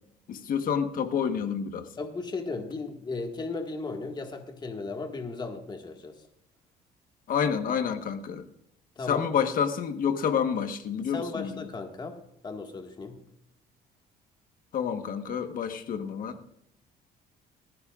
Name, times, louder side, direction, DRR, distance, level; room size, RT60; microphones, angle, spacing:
voice 1, 0.3-1.8 7.3-8.4 9.1-11.6 14.7-16.3, left 7 dB, 55° left, 8 dB, 1.3 m, -28 dB
voice 2, 2.0-6.1 9.0-9.3 11.0-12.2 12.4-13.2, left 3 dB, 25° left, 4 dB, 1.8 m, -36 dB
18.5 x 15.5 x 2.5 m, 0.76 s
cardioid pair, 110°, 17 cm